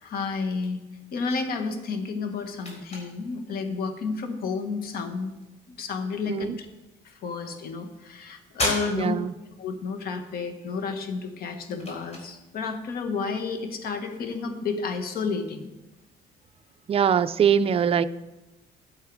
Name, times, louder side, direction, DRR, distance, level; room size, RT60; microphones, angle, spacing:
voice 1, 0.0-0.8 1.1-5.3 5.7-6.7 7.0-9.2 9.6-15.7, left 4 dB, 60° left, 1.6 m, -31 dB
sound 1, 1.8-16.2, left 1 dB, 40° left, 4.0 m, -40 dB
voice 2, 6.3-6.6 8.9-9.3 16.9-18.0, right 8 dB, 35° right, 0.5 m, -22 dB
13.5 x 7.9 x 4.8 m
cardioid pair, 110°, 17 cm